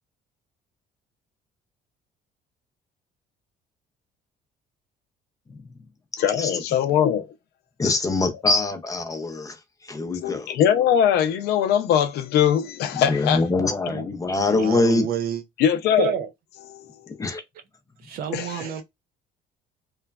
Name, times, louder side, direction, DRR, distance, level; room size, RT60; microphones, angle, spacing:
voice 1, 6.2-7.3 7.8-7.9 10.1-13.7 15.6-16.1 16.8-16.9 18.3-18.4, left 9 dB, 75° left, 0.5 m, -21 dB
voice 2, 7.8-9.6 9.9-10.6 13.1-15.1 17.2-17.4, left 3 dB, 20° left, 0.5 m, -24 dB
voice 3, 14.4-15.4 16.0-16.3 18.0-18.8, right 9 dB, 60° right, 0.4 m, -29 dB
3.0 x 2.1 x 2.3 m
cardioid pair, 110°, 17 cm